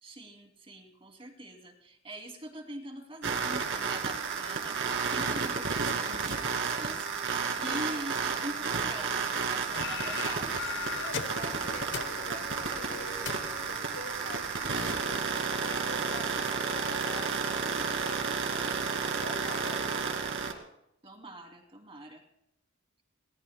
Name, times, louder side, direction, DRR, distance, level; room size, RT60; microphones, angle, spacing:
voice 1, 0.0-10.6 21.0-22.2, right 1 dB, 25° right, 3 dB, 2.8 m, -43 dB
sound 1, 3.2-20.5, right 5 dB, 60° right, 2.3 m, -32 dB
voice 2, 7.6-8.1 10.9-20.0, left 2 dB, 85° left, 2 dB, 5.8 m, -46 dB
sound 2, 9.7-14.6, left 6 dB, 60° left, 0.9 m, -40 dB
29.0 x 19.0 x 2.2 m, 0.81 s
head